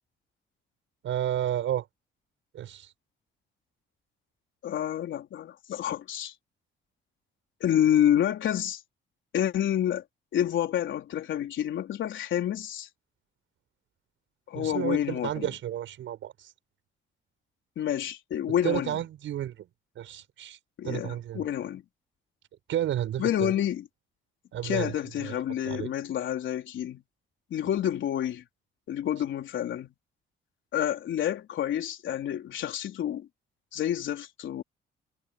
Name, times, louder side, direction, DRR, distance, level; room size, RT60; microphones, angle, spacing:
voice 1, 1.0-1.9 2.5-2.9 14.5-16.5 18.6-19.7 20.0-20.6 20.8-21.4 22.7-23.5 24.5-24.9 25.2-25.3 25.7-25.9, right 11 dB, 75° right, 7.7 m, -31 dB
voice 2, 4.6-6.3 7.6-8.8 9.3-10.0 10.3-12.9 14.5-15.5 17.8-19.0 20.8-21.8 23.2-23.8 24.6-27.0 27.5-28.4 28.9-29.9 30.7-33.3 33.7-34.6, left 10 dB, 75° left, 4.1 m, -28 dB
cardioid pair, 90°, 20 cm